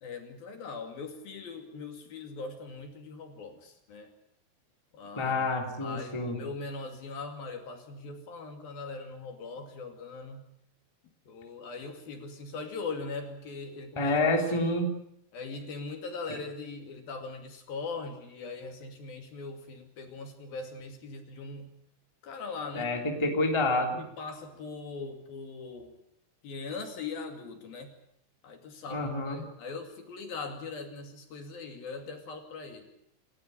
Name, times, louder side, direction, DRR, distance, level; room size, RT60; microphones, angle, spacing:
voice 1, 0.0-4.1 4.9-5.5 5.8-10.4 11.3-14.2 14.4-14.5 15.3-21.7 22.2-22.9 23.8-25.9 26.4-27.9 28.4-32.9, left 4 dB, 55° left, 5 dB, 4.0 m, -40 dB
voice 2, 5.2-6.4 14.0-14.9 22.7-24.0 28.9-29.4, left 2 dB, 5° left, 3 dB, 2.6 m, -28 dB
29.0 x 13.5 x 10.0 m, 0.74 s
omnidirectional pair, 5.2 m